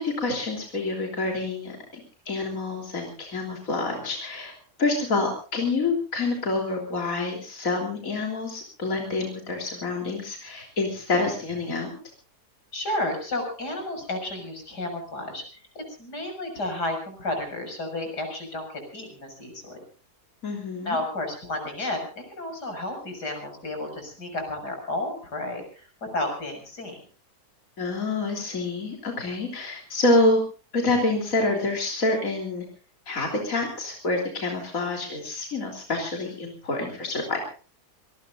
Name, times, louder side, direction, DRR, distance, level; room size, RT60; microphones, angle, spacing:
voice 1, 0.0-4.5 4.8-12.0 20.4-21.0 27.8-30.4 30.7-32.7 33.1-37.4, left 2 dB, 55° left, 1 dB, 3.9 m, -27 dB
voice 2, 12.7-19.8 20.8-27.0, left 1 dB, 80° left, 4 dB, 7.0 m, -32 dB
26.5 x 19.5 x 2.6 m, 0.37 s
omnidirectional pair, 1.7 m